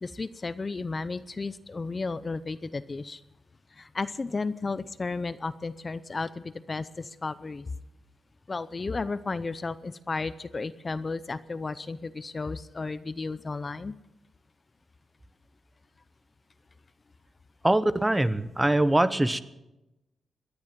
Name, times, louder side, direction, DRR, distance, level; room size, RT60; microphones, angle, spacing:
voice 1, 0.0-3.2 3.7-7.7 8.5-14.0, left 3 dB, 35° left, 15 dB, 0.6 m, -33 dB
voice 2, 17.6-19.4, right 1 dB, 15° right, 14 dB, 0.8 m, -23 dB
18.0 x 10.5 x 7.5 m, 0.95 s
cardioid pair, 85°, 0 cm